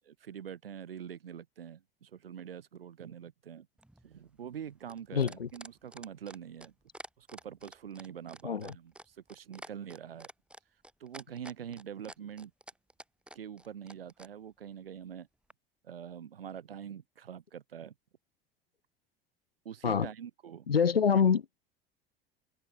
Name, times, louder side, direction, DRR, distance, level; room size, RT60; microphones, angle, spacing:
voice 1, 0.2-3.7 4.0-6.7 7.2-10.3 11.0-12.5 13.3-15.3 15.8-17.9 19.6-20.7, right 8 dB, 75° right, 1.2 m, -45 dB
sound 1, 3.8-14.3 15.5-15.6, right 1 dB, 5° right, 2.8 m, -49 dB
voice 2, 5.1-5.5 8.4-8.7 19.8-20.1 20.7-21.4, left 7 dB, 80° left, 0.9 m, -26 dB
open air
figure-of-eight pair, 65°, 29 cm